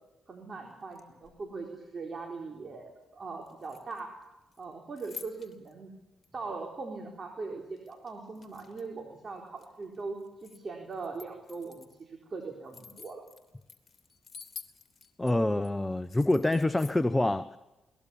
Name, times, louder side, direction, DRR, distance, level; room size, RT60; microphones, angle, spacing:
voice 1, 0.3-4.1 4.6-5.9 6.3-13.2, right 4 dB, 45° right, 1 dB, 4.3 m, -40 dB
sound 1, 0.8-1.5 3.4-4.2 4.5-5.7 6.2-6.3 7.8-9.0 9.4-10.6 10.9-12.0 12.4-15.3 15.6-15.7 16.0-17.0, left 6 dB, 45° left, 2.9 m, -50 dB
voice 2, 15.2-17.6, left 1 dB, 15° left, 12 dB, 1.0 m, -26 dB
22.5 x 19.5 x 7.2 m, 0.99 s
hypercardioid pair, 45°, 0 cm